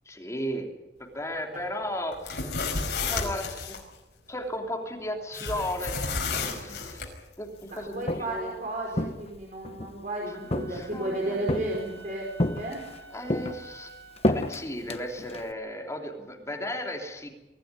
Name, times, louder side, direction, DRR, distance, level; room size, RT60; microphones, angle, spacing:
voice 1, 0.0-0.7 1.0-2.5 2.8-3.8 4.3-7.1 7.4-8.5 10.4-11.7 13.1-13.9 14.2-17.3, left 1 dB, 15° left, 2 dB, 3.1 m, -35 dB
sound 1, 2.1-3.8 5.3-7.1, left 4 dB, 70° left, 5.6 m, -31 dB
voice 2, 7.7-12.3 12.5-12.8, right 1 dB, 50° right, -1 dB, 4.8 m, -33 dB
Walk footsteps, 7.8-8.5 8.9-10.0 10.5-11.1 11.5-12.0 12.4-13.0 13.3-15.5, left 1 dB, 35° left, 1.1 m, -30 dB
Wind instrument woodwind instrument, 10.2-14.3, right 3 dB, 85° right, 5.5 m, -49 dB
24.0 x 15.5 x 9.7 m, 1.0 s
head